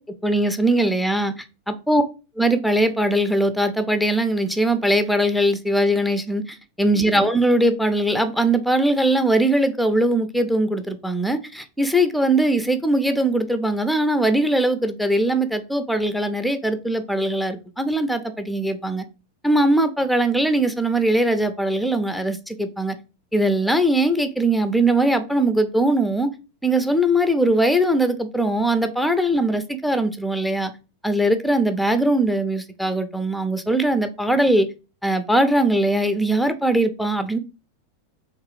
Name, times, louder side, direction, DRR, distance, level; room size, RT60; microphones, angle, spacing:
voice 1, 0.2-2.0 2.4-19.0 19.4-23.0 23.3-26.3 26.6-30.7 31.0-34.7 35.0-37.4, right 1 dB, ahead, 0.5 m, -21 dB
3.7 x 3.0 x 4.8 m
figure-of-eight pair, 90°, 0 cm